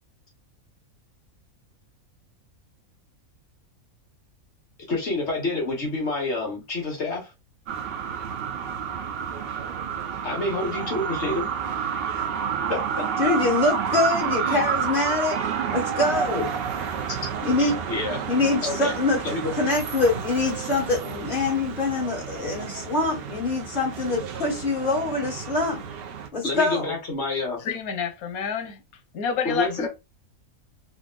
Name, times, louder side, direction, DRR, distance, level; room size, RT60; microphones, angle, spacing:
voice 1, 4.9-7.3 10.2-11.5 12.7-13.1 14.4-14.6 16.4-16.5 17.9-18.2 18.6-18.9 19.2-19.5 26.4-27.6 29.4-29.9, left 2 dB, 55° left, 1.3 m, -28 dB
sound 1, 7.7-26.3, right 7 dB, 60° right, 0.6 m, -30 dB
voice 2, 13.2-15.4 15.7-16.6 17.4-17.7 18.3-19.2 19.6-25.8 26.3-26.9, left 3 dB, 40° left, 1.4 m, -24 dB
voice 3, 27.6-28.8 29.1-29.9, left 6 dB, 85° left, 1.2 m, -28 dB
3.4 x 2.5 x 2.3 m
omnidirectional pair, 1.5 m